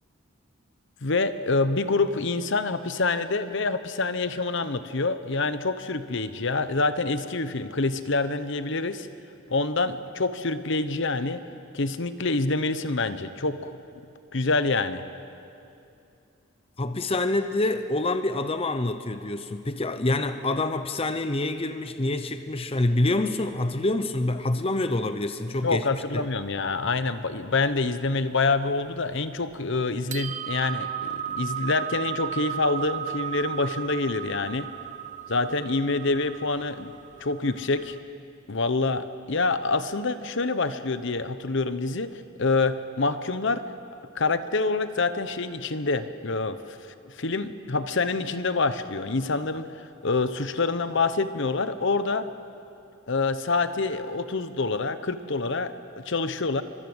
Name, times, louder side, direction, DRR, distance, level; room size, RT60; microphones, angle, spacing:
voice 1, 1.0-9.1 9.5-11.4 11.7-13.8 14.3-15.0 25.6-34.7 35.3-36.9 37.2-38.0 38.5-42.1 42.4-43.6 44.1-46.8 47.1-49.7 50.0-52.3 53.1-56.6, left 3 dB, 65° left, 1.0 m, -26 dB
voice 2, 16.8-25.8 26.1-26.3, left 2 dB, 30° left, 0.8 m, -26 dB
sound 1, 26.1-28.2 28.4-28.6 29.0-29.5 29.9-38.0, right 10 dB, 40° right, 0.8 m, -35 dB
25.0 x 22.5 x 8.0 m
head